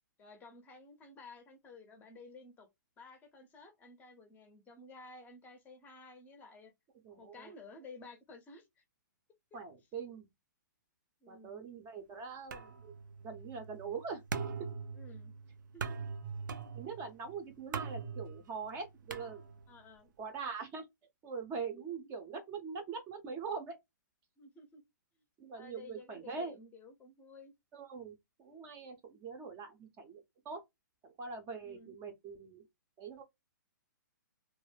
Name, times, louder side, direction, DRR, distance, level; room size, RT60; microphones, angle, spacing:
voice 1, 0.2-2.7 3.0-6.7 7.2-8.8 9.5-9.6 11.2-11.6 14.9-15.3 15.7-16.1 19.7-20.1 21.7-21.9 24.4-24.8 25.5-27.5 31.6-32.0, left 3 dB, 15° left, 0.6 m, -54 dB
voice 2, 7.0-7.5 9.5-10.3 11.3-12.9 13.2-14.2 16.7-19.4 20.2-20.8 21.2-23.8 25.4-26.5 27.7-30.6 31.0-32.6 33.0-33.2, right 5 dB, 25° right, 0.6 m, -43 dB
sound 1, 12.5-19.9, right 5 dB, 70° right, 0.4 m, -43 dB
2.4 x 2.1 x 3.2 m
hypercardioid pair, 140°, 11 cm